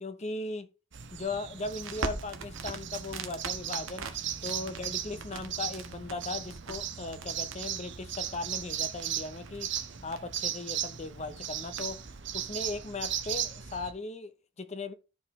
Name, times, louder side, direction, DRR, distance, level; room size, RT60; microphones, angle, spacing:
voice 1, 0.0-0.7 1.1-4.1 4.4-9.7 10.0-12.0 12.3-14.9, left 3 dB, 35° left, 0.7 m, -38 dB
sound 1, 0.9-13.9, right 10 dB, 60° right, 0.8 m, -37 dB
Crackle, 1.7-12.2, right 4 dB, 90° right, 1.3 m, -43 dB
13.5 x 4.9 x 3.1 m
head